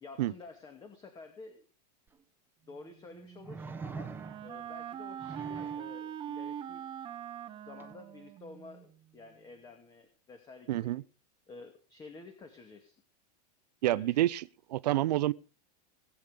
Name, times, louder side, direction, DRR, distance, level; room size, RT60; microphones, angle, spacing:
voice 1, 0.0-1.6 2.6-4.2 4.4-6.8 7.6-11.0 11.5-13.0 13.8-14.2, left 3 dB, 20° left, 2.3 m, -51 dB
sound 1, 2.1-2.2 3.4-4.6 5.2-5.9 7.8-7.9, right 4 dB, 10° right, 1.3 m, -43 dB
Wind instrument woodwind instrument, 3.1-8.9, right 9 dB, 25° right, 1.3 m, -42 dB
voice 2, 10.7-11.0 13.8-15.3, right 15 dB, 85° right, 0.8 m, -28 dB
20.0 x 8.8 x 5.1 m
supercardioid pair, 145°, 20 cm